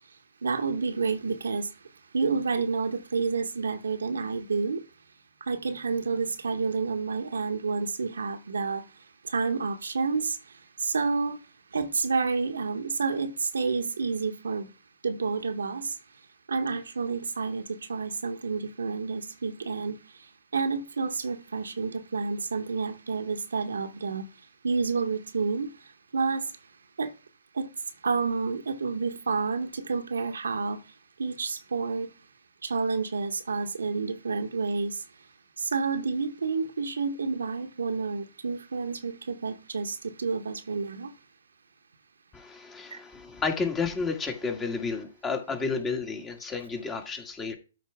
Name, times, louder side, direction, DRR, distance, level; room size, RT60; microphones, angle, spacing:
voice 1, 0.4-1.7 2.1-4.8 5.5-8.8 9.3-10.4 10.8-11.4 11.7-14.7 15.0-15.9 16.5-20.0 20.5-24.3 24.6-25.7 26.1-26.4 27.0-27.1 27.6-27.7 28.0-30.8 31.2-32.1 32.6-34.9 35.7-41.1, right 4 dB, 75° right, 1.1 m, -29 dB
voice 2, 42.3-47.5, left 4 dB, 15° left, 1.9 m, -31 dB
13.0 x 4.5 x 3.5 m
figure-of-eight pair, 125°, 0 cm